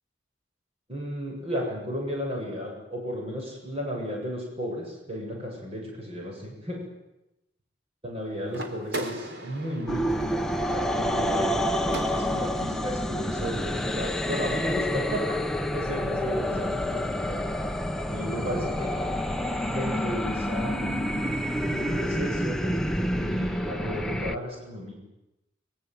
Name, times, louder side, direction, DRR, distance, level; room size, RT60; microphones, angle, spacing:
voice 1, 0.9-6.8 8.0-11.6 12.1-15.4 15.7-17.4 18.1-19.0 19.7-21.4 21.7-22.8 23.1-24.9, equal, 35° right, -1 dB, 7.4 m, -34 dB
sound 1, 8.5-12.6, right 1 dB, 65° right, 3.6 m, -38 dB
Wicked Stereo Stretch, 9.9-24.4, equal, 5° left, 0.9 m, -28 dB
24.0 x 22.5 x 9.2 m, 0.92 s
head